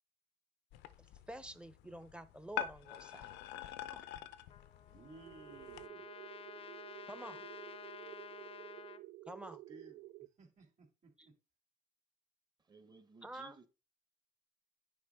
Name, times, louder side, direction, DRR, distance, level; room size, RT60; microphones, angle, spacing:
sound 1, 0.7-5.9, left 11 dB, 90° left, 0.6 m, -46 dB
voice 1, 1.3-3.3 3.6-4.1 7.1-7.5 9.3-9.6 13.2-13.5, right 1 dB, 5° right, 0.7 m, -49 dB
Trumpet, 4.5-9.0, left 8 dB, 35° left, 0.6 m, -52 dB
voice 2, 4.9-6.1 9.7-11.4, right 3 dB, 40° right, 2.6 m, -58 dB
sound 2, 5.3-10.3, right 17 dB, 80° right, 0.4 m, -52 dB
voice 3, 12.6-13.7, right 3 dB, 25° right, 1.2 m, -58 dB
9.6 x 4.8 x 3.7 m
cardioid pair, 110°, 17 cm